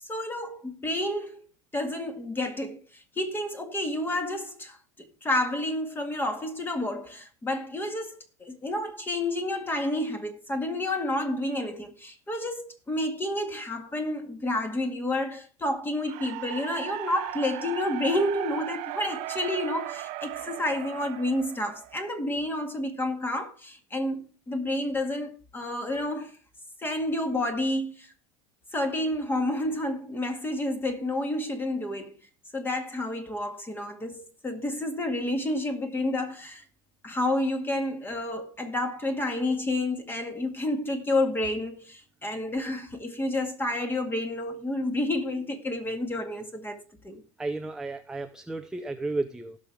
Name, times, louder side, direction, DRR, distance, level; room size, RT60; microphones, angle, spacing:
voice 1, 0.1-1.4 1.7-26.4 26.8-28.1 28.7-32.1 32.5-36.6 37.0-47.2, left 1 dB, 15° left, 2.0 m, -30 dB
sound 1, 16.0-22.2, right 17 dB, 55° right, 0.7 m, -37 dB
voice 2, 47.4-49.6, right 2 dB, 5° right, 0.6 m, -33 dB
16.5 x 6.4 x 3.5 m
supercardioid pair, 125°, 15 cm